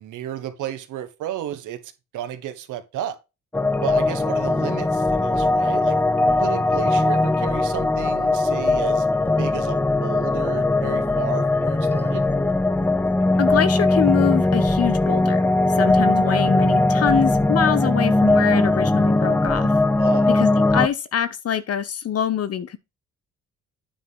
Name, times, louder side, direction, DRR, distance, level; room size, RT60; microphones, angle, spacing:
voice 1, 0.0-3.2 3.8-6.0 6.4-9.1 9.4-12.2 19.8-20.3, right 11 dB, 90° right, 1.4 m, -33 dB
sound 1, 3.5-20.9, left 2 dB, 5° left, 0.5 m, -20 dB
voice 2, 13.4-15.4 15.8-19.7 20.3-22.8, left 8 dB, 55° left, 1.2 m, -24 dB
9.2 x 3.7 x 5.4 m
cardioid pair, 90°, 30 cm